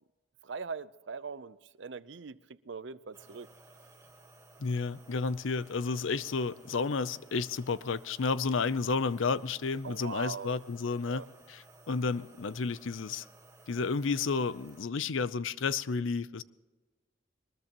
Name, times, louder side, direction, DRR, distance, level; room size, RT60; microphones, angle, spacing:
voice 1, 0.4-3.5 9.8-10.6 11.1-11.3, right 5 dB, 65° right, 0.6 m, -41 dB
sound 1, 3.1-14.8, right 2 dB, 15° right, 1.3 m, -57 dB
voice 2, 4.6-13.3 13.7-16.4, left 4 dB, 80° left, 0.6 m, -31 dB
22.5 x 20.0 x 3.0 m
head